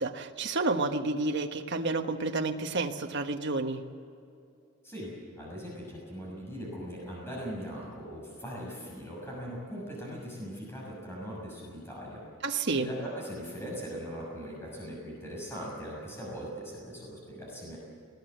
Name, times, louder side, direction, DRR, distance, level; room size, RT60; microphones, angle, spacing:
voice 1, 0.0-3.8 12.4-12.9, right 3 dB, 55° right, 5 dB, 1.4 m, -30 dB
voice 2, 4.8-12.2 12.7-17.8, equal, 10° left, -4 dB, 6.4 m, -40 dB
19.5 x 19.5 x 8.1 m, 2.5 s
head